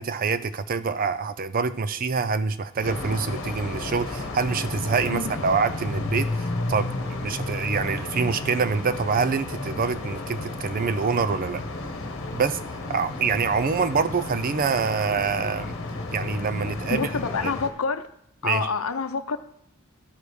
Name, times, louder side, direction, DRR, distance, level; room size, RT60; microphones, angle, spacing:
voice 1, 0.0-6.9 7.2-11.6 12.3-12.6 12.9-15.7 16.1-17.1 18.4-18.7, right 5 dB, 40° right, 13 dB, 0.5 m, -25 dB
sound 1, 2.8-17.7, left 2 dB, 60° left, 1.2 m, -32 dB
voice 2, 16.9-18.1 18.4-19.4, left 5 dB, 80° left, 9 dB, 0.7 m, -27 dB
12.5 x 5.0 x 4.8 m, 0.74 s
head